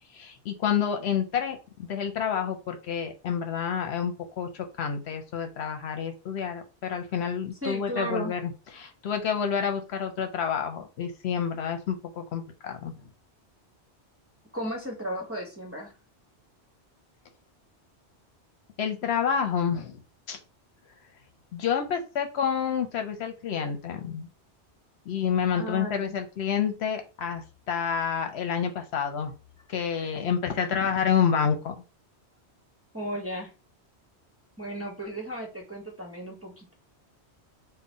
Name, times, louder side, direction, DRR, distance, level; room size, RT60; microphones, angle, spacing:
voice 1, 0.1-12.9 18.8-20.0 20.3-20.4 21.5-24.3 25.1-29.3 29.7-31.8, left 7 dB, 75° left, 6 dB, 0.9 m, -29 dB
voice 2, 7.6-8.3 14.5-15.9 25.6-26.2 32.9-33.5 34.6-36.7, right 1 dB, 15° right, -2 dB, 0.8 m, -35 dB
3.8 x 2.1 x 3.9 m, 0.32 s
omnidirectional pair, 1.1 m